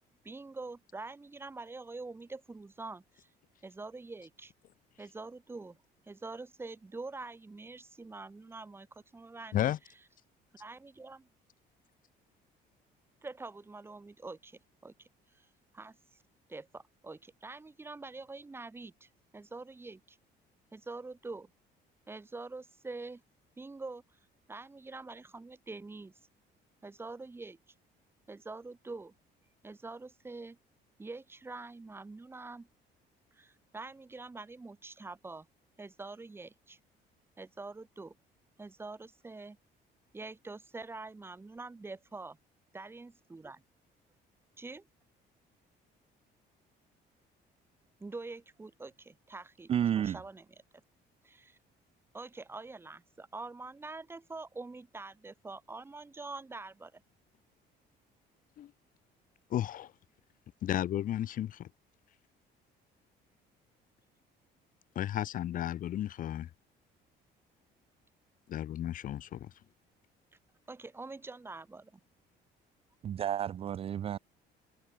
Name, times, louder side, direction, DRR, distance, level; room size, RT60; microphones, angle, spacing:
voice 1, 0.2-3.3 3.6-4.5 5.0-5.8 6.1-9.7 10.6-11.3 13.2-15.5 15.7-16.2 16.5-20.2 20.7-21.5 22.1-23.2 23.6-24.2 24.5-26.1 26.8-27.6 28.3-29.1 29.6-30.6 31.0-32.7 33.3-35.5 35.8-36.8 37.4-38.1 38.6-39.6 40.1-42.4 42.7-43.6 44.6-44.9 48.0-50.4 51.2-51.6 52.1-57.0 70.7-72.0, right 3 dB, 10° right, 4.9 m, -45 dB
voice 2, 49.7-50.2 73.0-74.2, right 10 dB, 30° right, 0.5 m, -31 dB
voice 3, 59.5-59.9 60.6-61.7 65.0-66.5 68.5-69.5, left 11 dB, 45° left, 2.3 m, -33 dB
cardioid pair, 180°, 19 cm